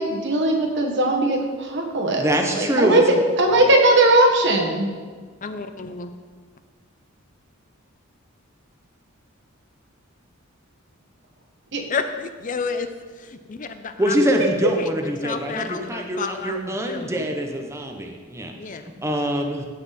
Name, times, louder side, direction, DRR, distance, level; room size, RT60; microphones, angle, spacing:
voice 1, 0.0-2.2 2.5-3.0 3.4-4.9 11.7-11.8, right 2 dB, 60° right, 2 dB, 1.5 m, -19 dB
voice 2, 2.1-3.2 14.0-19.6, equal, 15° right, 3 dB, 0.8 m, -24 dB
voice 3, 5.4-6.1 11.9-12.9 13.2-14.5 14.8-17.3 18.6-18.9, left 4 dB, 40° left, 9 dB, 0.5 m, -31 dB
15.5 x 5.9 x 4.2 m, 1.5 s
head